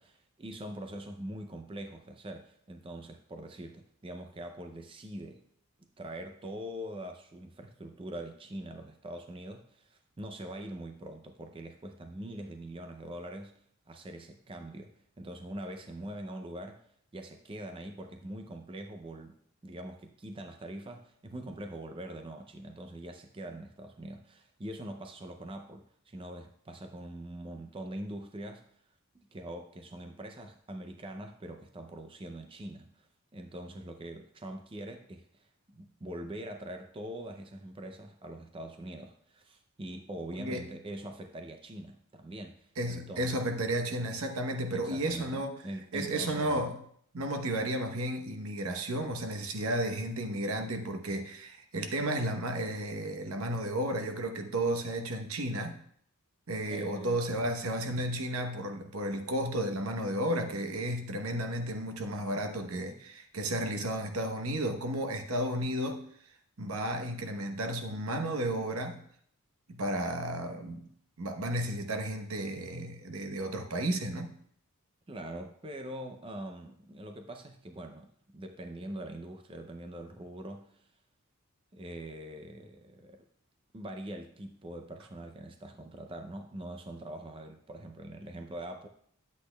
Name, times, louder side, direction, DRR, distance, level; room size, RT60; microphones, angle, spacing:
voice 1, 0.0-5.5 6.0-13.6 13.9-16.8 17.1-19.4 19.6-28.7 29.1-43.3 44.7-46.6 56.7-57.4 75.1-80.9 81.7-83.3 83.7-88.9, right 1 dB, 25° right, 5 dB, 0.5 m, -43 dB
voice 2, 42.8-45.5 45.9-46.8 47.1-55.8 56.5-66.0 66.6-69.0 69.7-70.9 71.2-74.3, right 1 dB, 75° right, 5 dB, 1.0 m, -33 dB
10.0 x 8.3 x 2.3 m, 0.64 s
head